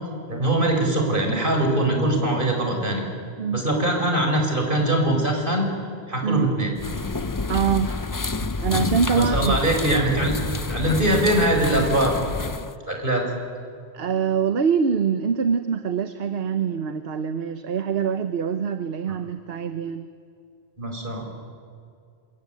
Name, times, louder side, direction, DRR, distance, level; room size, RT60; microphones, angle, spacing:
voice 1, 0.3-3.0 3.5-5.7 6.1-6.7 9.1-10.3 10.7-12.1 12.8-13.3 20.8-21.2, right 1 dB, 55° right, 2 dB, 5.2 m, -22 dB
sound 1, 6.8-12.7, left 3 dB, 25° left, 0.5 m, -28 dB
voice 2, 7.5-7.9 8.6-9.6 13.9-20.0, right 6 dB, 70° right, 9 dB, 1.1 m, -24 dB
27.0 x 23.0 x 9.1 m, 2.3 s
omnidirectional pair, 1.0 m